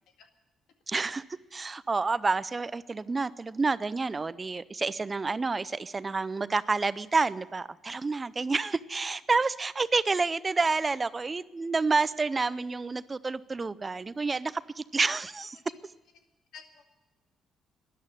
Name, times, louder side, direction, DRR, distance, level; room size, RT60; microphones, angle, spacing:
voice 1, 0.9-1.2 1.5-15.6, right 4 dB, 30° right, 17 dB, 0.5 m, -29 dB
voice 2, 16.2-16.9, left 6 dB, 85° left, 5 dB, 2.0 m, -51 dB
13.0 x 11.0 x 9.8 m, 1.1 s
cardioid pair, 90°, 0 cm